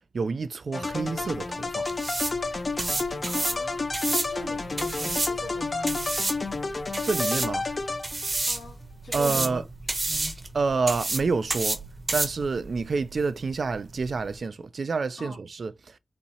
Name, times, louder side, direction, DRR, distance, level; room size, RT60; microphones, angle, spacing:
voice 1, 0.1-1.9 7.0-7.7 9.1-9.6 10.5-11.8 12.1-16.0, right 4 dB, 55° right, 0.4 m, -28 dB
sound 1, 0.7-8.4, left 3 dB, 35° left, 0.6 m, -31 dB
sound 2, 0.9-14.4, right 2 dB, 30° right, 0.8 m, -32 dB
voice 2, 3.3-6.1 8.5-10.3 15.2-15.4, left 1 dB, 85° left, 2.4 m, -41 dB
4.2 x 2.8 x 4.2 m
wide cardioid pair, 140°, 0 cm